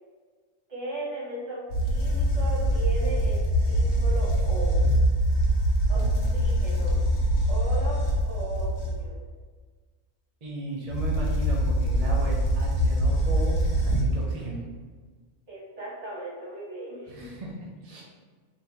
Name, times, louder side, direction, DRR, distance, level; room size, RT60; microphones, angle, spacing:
voice 1, 0.7-3.4 3.7-4.8 5.9-6.0 6.3-7.0 7.5-9.2 15.5-17.4, right 1 dB, 60° right, -7 dB, 1.8 m, -36 dB
sound 1, 1.7-9.1 10.9-14.3, right 1 dB, 75° left, 1.1 m, -24 dB
voice 2, 5.9-6.7 10.4-13.6 13.8-14.6 17.1-17.5 17.8-18.0, right 1 dB, 40° right, -3 dB, 0.6 m, -36 dB
4.3 x 2.7 x 3.4 m, 1.4 s
omnidirectional pair, 1.3 m